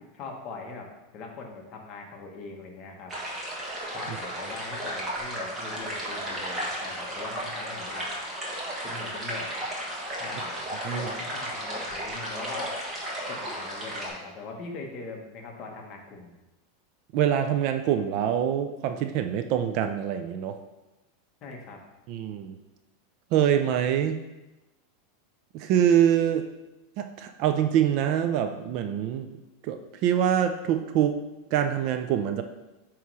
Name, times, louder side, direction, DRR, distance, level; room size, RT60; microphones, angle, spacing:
voice 1, 0.1-3.1 3.9-8.1 8.8-9.5 10.2-12.8 13.3-16.3 21.4-21.8, left 3 dB, 30° left, 1 dB, 1.1 m, -41 dB
sound 1, 3.1-14.1, right 1 dB, 15° right, 1.4 m, -34 dB
voice 2, 17.1-20.6 22.1-22.6 23.3-24.2 25.5-26.5 27.0-29.3 29.6-31.2 31.5-32.4, right 9 dB, 45° right, 7 dB, 0.4 m, -25 dB
8.2 x 3.0 x 4.7 m, 1.0 s
supercardioid pair, 165°, 0 cm